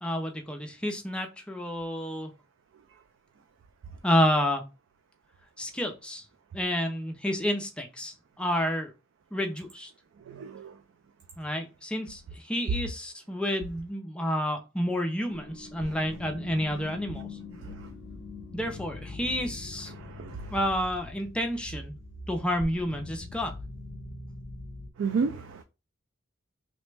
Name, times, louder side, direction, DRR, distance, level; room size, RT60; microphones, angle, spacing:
voice 1, 0.0-2.3 4.0-4.6 5.6-6.2 6.5-8.9 9.3-9.9 11.4-17.3 18.5-19.9 20.5-22.0 22.3-23.5, equal, 5° left, 0.4 m, -30 dB
voice 2, 10.3-10.7 17.6-17.9 19.9-20.5 25.0-25.6, right 5 dB, 65° right, 0.3 m, -32 dB
sound 1, 15.3-24.9, left 3 dB, 80° left, 0.5 m, -42 dB
3.1 x 2.0 x 3.2 m
head